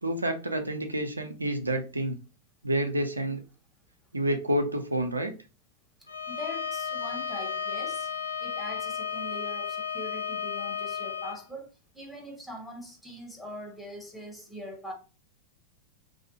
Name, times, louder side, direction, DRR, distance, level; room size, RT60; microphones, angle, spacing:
voice 1, 0.0-2.2 2.6-3.4 4.1-5.4, right 1 dB, 80° right, 0.4 m, -29 dB
Bowed string instrument, 6.1-11.4, left 7 dB, 80° left, 0.4 m, -33 dB
voice 2, 6.3-8.1 8.4-14.9, equal, 5° left, 0.8 m, -42 dB
2.4 x 2.0 x 2.7 m
figure-of-eight pair, 90°, 0 cm